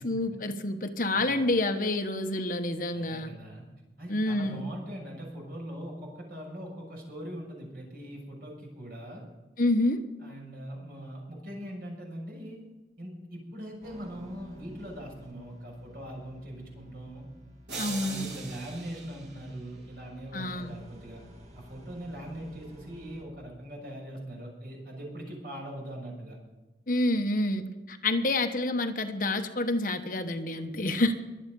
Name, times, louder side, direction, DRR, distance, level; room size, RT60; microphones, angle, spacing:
voice 1, 0.0-3.3 4.1-4.6 9.6-10.0 17.8-18.3 20.3-20.8 26.9-31.1, left 2 dB, 50° left, 6 dB, 1.2 m, -28 dB
voice 2, 2.9-3.6 4.0-9.2 10.2-12.6 13.0-17.3 17.7-21.2 21.5-26.4, right 1 dB, 55° right, -1 dB, 6.4 m, -41 dB
sound 1, 13.8-23.2, equal, 40° right, 2.9 m, -52 dB
sound 2, 17.7-20.0, right 4 dB, 80° right, 3.4 m, -41 dB
23.0 x 8.6 x 5.4 m, 1.1 s
head